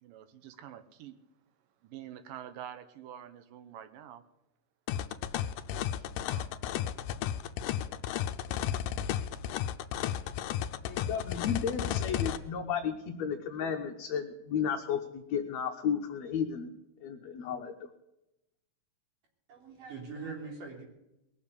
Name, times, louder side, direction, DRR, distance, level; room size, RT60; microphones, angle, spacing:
voice 1, 0.0-1.2 1.8-4.2 5.3-5.6 6.0-6.5, right 10 dB, 85° right, 11 dB, 2.7 m, -47 dB
sound 1, 4.9-12.4, left 10 dB, 80° left, 2.3 m, -33 dB
voice 2, 10.9-16.7 17.0-17.7, left 7 dB, 65° left, 2 dB, 2.0 m, -33 dB
voice 3, 19.5-20.8, right 4 dB, 70° right, 1 dB, 5.1 m, -42 dB
20.5 x 7.3 x 8.3 m, 0.89 s
omnidirectional pair, 3.8 m